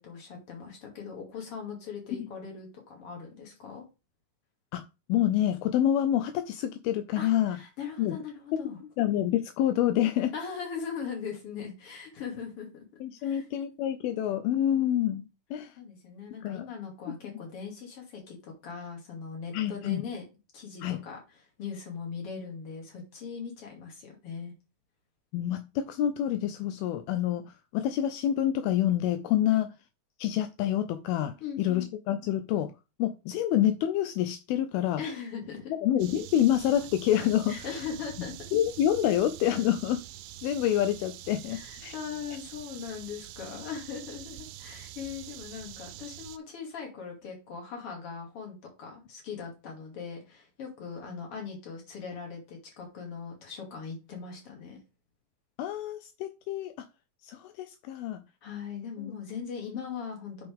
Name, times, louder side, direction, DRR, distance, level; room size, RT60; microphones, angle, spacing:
voice 1, 0.0-3.9 7.2-8.8 10.3-12.7 13.2-13.4 14.6-15.0 15.8-20.2 20.5-24.5 29.5-29.6 31.4-31.9 35.0-35.7 37.5-38.3 41.5-54.8 58.4-60.5, left 6 dB, 40° left, 3.0 m, -40 dB
voice 2, 5.1-7.6 8.0-8.2 9.0-10.3 13.0-15.2 15.5-15.7 16.4-16.7 19.5-20.0 20.8-21.0 25.3-29.7 30.2-32.7 33.0-35.0 35.7-37.7 38.5-40.0 40.4-41.9 55.6-56.7 57.2-58.2 59.0-59.1, left 11 dB, 80° left, 2.4 m, -27 dB
sound 1, 36.0-46.4, right 13 dB, 85° right, 2.5 m, -45 dB
8.1 x 6.2 x 3.5 m
omnidirectional pair, 4.4 m